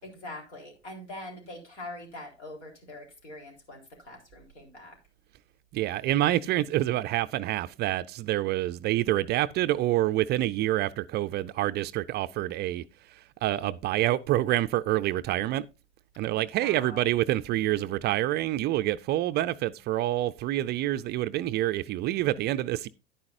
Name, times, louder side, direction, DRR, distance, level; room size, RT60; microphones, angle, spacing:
voice 1, 0.0-5.0 16.6-17.1, left 1 dB, 75° left, 3.9 m, -43 dB
voice 2, 5.7-12.8 13.1-15.7 16.2-22.9, right 14 dB, 30° right, 0.4 m, -27 dB
10.5 x 9.6 x 2.5 m
hypercardioid pair, 85°, 34 cm